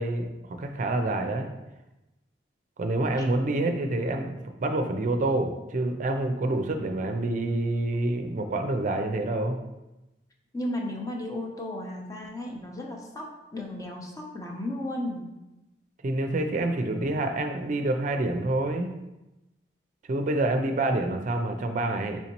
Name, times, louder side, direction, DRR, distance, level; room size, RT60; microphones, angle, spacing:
voice 1, 0.0-1.5 2.8-4.3 4.6-9.6 16.0-18.9 20.1-22.2, right 2 dB, 45° right, 5 dB, 0.4 m, -27 dB
voice 2, 10.5-15.4, left 1 dB, 20° left, 0 dB, 0.6 m, -34 dB
4.5 x 4.1 x 2.9 m, 0.98 s
head